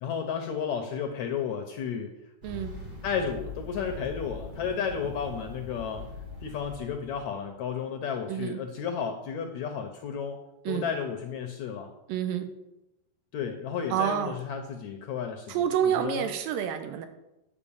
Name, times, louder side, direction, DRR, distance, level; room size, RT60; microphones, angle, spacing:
voice 1, 0.0-2.2 3.0-6.1 6.4-11.9 13.3-15.6 16.0-16.3, left 7 dB, 75° left, 5 dB, 1.7 m, -33 dB
sound 1, 2.4-7.3, left 3 dB, 60° right, 0.5 m, -42 dB
voice 2, 2.4-2.8 8.3-8.6 10.7-10.8 12.1-12.5 13.9-14.4 15.5-17.1, right 9 dB, 85° right, 8 dB, 2.6 m, -28 dB
9.8 x 5.2 x 7.1 m, 0.93 s
omnidirectional pair, 4.1 m